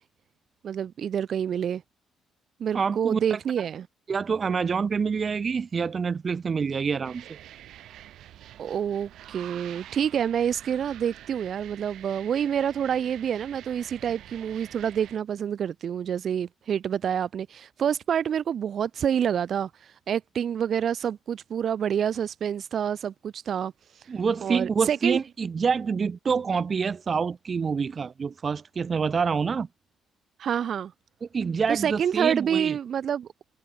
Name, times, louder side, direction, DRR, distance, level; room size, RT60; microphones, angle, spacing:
voice 1, 0.6-1.8 2.6-3.9 8.6-23.7 24.0-24.1 24.4-25.2 30.4-30.9 31.7-33.3, right 8 dB, 60° right, 2.0 m, -27 dB
voice 2, 2.7-3.4 4.1-7.2 24.1-29.7 31.2-32.8, right 5 dB, 40° right, 2.4 m, -27 dB
sound 1, 7.0-15.2, right 12 dB, 80° right, 7.0 m, -47 dB
cardioid pair, 90°, 0 cm